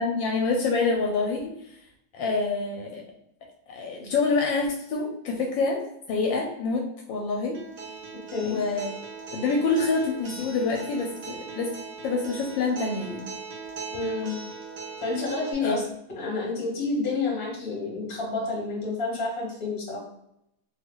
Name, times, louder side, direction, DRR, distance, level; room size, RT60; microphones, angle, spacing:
voice 1, 0.0-1.5 2.1-3.0 3.7-5.8 6.1-6.8 7.1-7.6 8.4-8.9 9.3-11.7 12.0-13.3 15.6-15.8, left 3 dB, 75° left, 0 dB, 1.2 m, -26 dB
Acoustic guitar, 7.5-15.5, right 5 dB, 80° right, 0.6 m, -39 dB
voice 2, 8.3-8.6 13.9-14.4 15.0-15.9 16.2-20.1, left 3 dB, 40° left, -2 dB, 1.0 m, -29 dB
3.2 x 2.4 x 2.9 m, 0.79 s
omnidirectional pair, 2.1 m